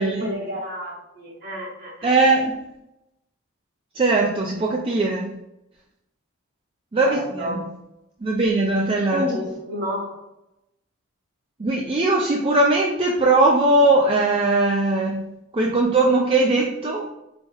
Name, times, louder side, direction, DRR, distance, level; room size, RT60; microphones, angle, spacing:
voice 1, 0.0-2.1 7.0-7.6 9.1-10.2, equal, 50° right, -2 dB, 1.2 m, -30 dB
voice 2, 2.0-2.5 4.0-5.3 6.9-7.6 8.2-9.2 11.6-15.2 15.5-17.1, right 2 dB, 25° right, -1 dB, 0.4 m, -20 dB
4.9 x 2.0 x 3.8 m, 0.87 s
head